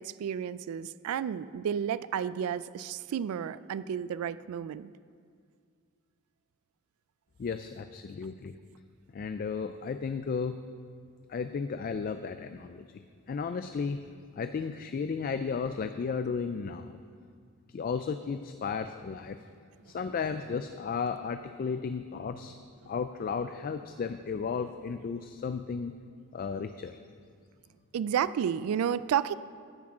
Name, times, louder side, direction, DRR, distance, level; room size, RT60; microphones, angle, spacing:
voice 1, 0.0-4.9 27.9-29.3, right 8 dB, 90° right, 17 dB, 0.3 m, -31 dB
voice 2, 7.4-8.5 9.1-10.6 11.3-14.0 14.4-17.0 17.7-19.4 19.9-22.6 22.9-25.9 26.3-27.0, left 5 dB, 40° left, 9 dB, 0.3 m, -34 dB
10.0 x 6.2 x 7.3 m, 2.1 s
head